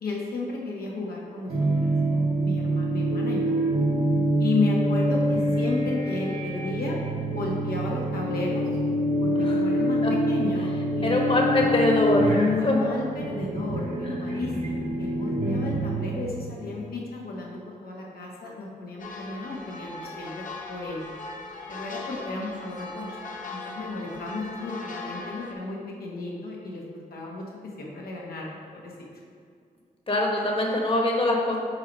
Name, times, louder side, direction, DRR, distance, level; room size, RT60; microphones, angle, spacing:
voice 1, 0.0-3.6 4.4-7.0 7.3-8.7 9.2-10.0 10.3-10.7 10.9-11.3 12.3-21.0 21.7-23.1 23.5-27.4 27.8-29.1 30.4-30.5, left 3 dB, 85° left, -3 dB, 1.2 m, -33 dB
sound 1, 1.5-16.6, right 1 dB, 55° right, 1.4 m, -26 dB
Telephone, 3.1-3.4 3.7-4.0 4.3-4.6 4.9-5.2 5.5-5.8 6.1-6.4 6.7-7.0 7.3-7.6 7.9-8.2 8.5-8.8 9.1-9.4 9.7-10.0 10.3-10.6 10.9-11.2 11.5-11.8 12.1-12.4 12.7-13.0 13.3-13.6 13.9-14.2, right 8 dB, 75° right, 1.0 m, -39 dB
voice 2, 11.0-12.3 12.6-12.7 30.1-31.6, left 1 dB, 35° left, 0 dB, 1.2 m, -23 dB
sound 2, 19.0-25.5, left 3 dB, 60° left, 0.9 m, -39 dB
4.7 x 4.5 x 5.2 m, 2.2 s
cardioid pair, 60°, 15 cm